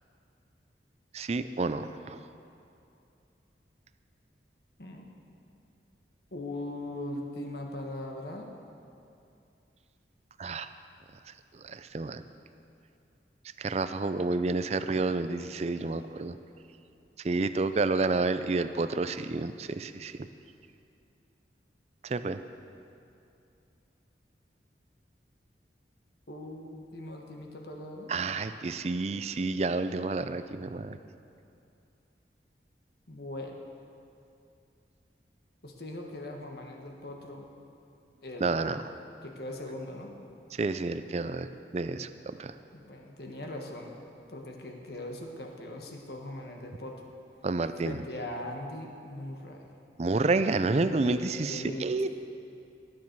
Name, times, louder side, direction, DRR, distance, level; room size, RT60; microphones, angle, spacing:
voice 1, 1.1-2.2 10.4-10.7 11.5-12.2 13.6-16.4 17.2-20.1 22.0-22.4 28.1-31.0 38.4-38.8 40.5-41.5 41.7-42.5 47.4-48.0 50.0-52.1, right 3 dB, 35° right, 11 dB, 0.4 m, -29 dB
voice 2, 6.3-8.5 26.3-28.1 33.1-33.6 35.6-37.5 38.2-38.9 39.2-40.1 42.7-44.0 44.3-47.1 47.8-49.8 51.0-51.9, left 1 dB, 60° left, 1 dB, 1.4 m, -40 dB
19.5 x 9.6 x 4.6 m, 2.6 s
head